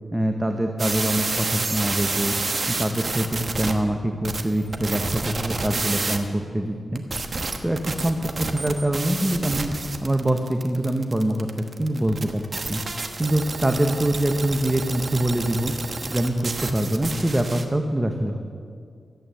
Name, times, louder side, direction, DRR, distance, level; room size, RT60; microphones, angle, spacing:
voice 1, 0.1-2.3 2.7-7.0 7.6-9.7 10.0-12.8 13.2-15.7 16.1-18.4, right 1 dB, 15° right, 4 dB, 0.9 m, -24 dB
sound 1, 0.8-3.7 4.2-6.2 7.0-17.6, right 3 dB, 45° right, 1.2 m, -29 dB
14.0 x 9.0 x 7.6 m, 2.2 s
wide cardioid pair, 100°, 0 cm